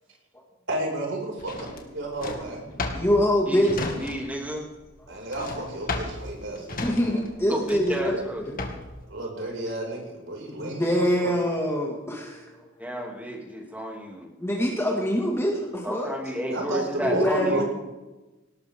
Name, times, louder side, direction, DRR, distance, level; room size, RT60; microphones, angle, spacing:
voice 1, 0.7-2.6 5.1-6.8 9.1-11.3 16.5-17.7, right 1 dB, 75° right, -1 dB, 5.8 m, -32 dB
Drawer open or close, 1.4-4.5 4.7-9.0, left 2 dB, 50° left, 2.2 m, -34 dB
voice 2, 2.9-3.8 6.8-8.2 8.5-8.6 10.6-12.9 14.4-16.1 17.0-17.7, equal, 15° left, -1 dB, 2.1 m, -24 dB
voice 3, 3.5-4.7 7.5-8.4 12.8-14.3 15.8-17.7, equal, 10° right, 0 dB, 2.8 m, -32 dB
19.5 x 18.5 x 3.7 m, 1.1 s
head